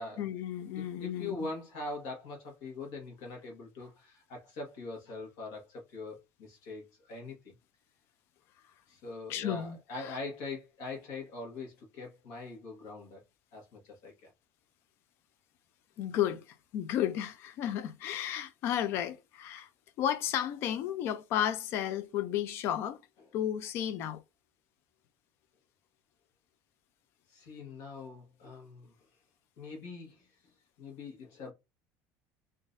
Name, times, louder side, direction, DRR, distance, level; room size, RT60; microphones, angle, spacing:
voice 1, 0.2-1.5 9.3-10.2 16.0-16.4 16.7-19.7 20.0-23.0 23.3-24.2, left 10 dB, 45° left, 0.4 m, -33 dB
voice 2, 0.7-7.5 8.9-13.2 13.5-14.3 27.3-28.9 29.6-30.3 30.8-31.5, left 3 dB, 65° left, 1.4 m, -42 dB
3.7 x 2.6 x 2.5 m
cardioid pair, 180°, 6 cm